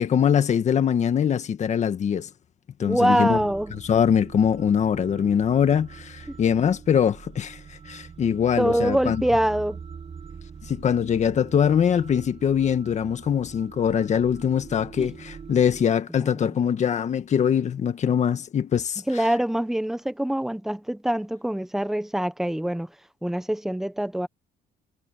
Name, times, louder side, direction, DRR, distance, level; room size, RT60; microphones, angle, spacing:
voice 1, 0.0-2.3 2.8-3.4 3.8-7.6 7.9-9.2 10.7-19.0, left 8 dB, 45° left, 1.7 m, -22 dB
voice 2, 2.8-3.7 6.3-6.4 8.6-9.8 15.0-15.1 16.4-16.5 19.1-22.9 23.2-24.3, right 1 dB, ahead, 1.1 m, -24 dB
sound 1, 3.3-15.8, right 6 dB, 35° right, 7.5 m, -43 dB
cardioid pair, 110°, 17 cm